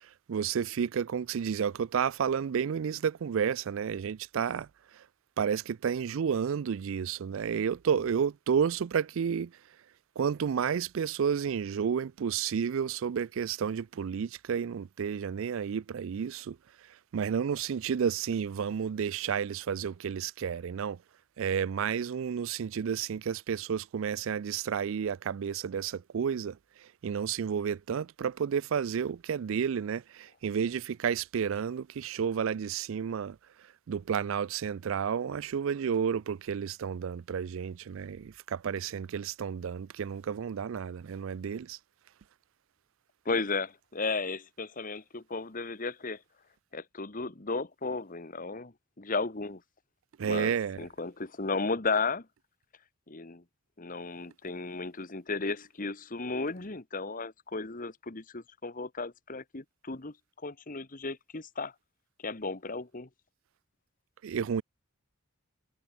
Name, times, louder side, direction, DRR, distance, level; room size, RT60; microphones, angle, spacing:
voice 1, 0.3-4.7 5.0-5.1 5.4-9.5 10.2-16.6 17.1-21.0 21.4-26.6 27.0-33.4 33.9-41.8 50.2-50.9 64.2-64.6, right 7 dB, 60° right, 0.4 m, -31 dB
voice 2, 43.2-46.2 46.7-49.6 50.2-52.3 53.1-53.4 53.8-60.1 60.4-61.7 62.2-63.1, left 3 dB, 40° left, 1.3 m, -34 dB
head